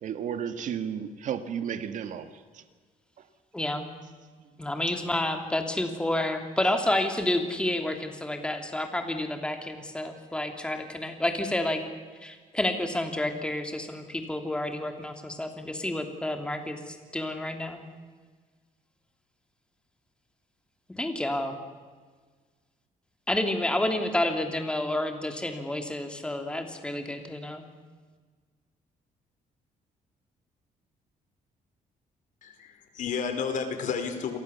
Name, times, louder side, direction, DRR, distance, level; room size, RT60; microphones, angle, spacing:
voice 1, 0.0-2.6 3.2-3.3 4.4-4.5, right 8 dB, 60° right, 10 dB, 1.9 m, -33 dB
voice 2, 3.5-3.9 4.6-11.8 12.2-17.8 21.0-21.5 23.3-27.6, left 1 dB, 5° left, 5 dB, 3.0 m, -29 dB
voice 3, 32.4-34.4, left 6 dB, 60° left, 7 dB, 4.4 m, -31 dB
30.0 x 23.5 x 7.2 m, 1.5 s
cardioid pair, 155°, 15 cm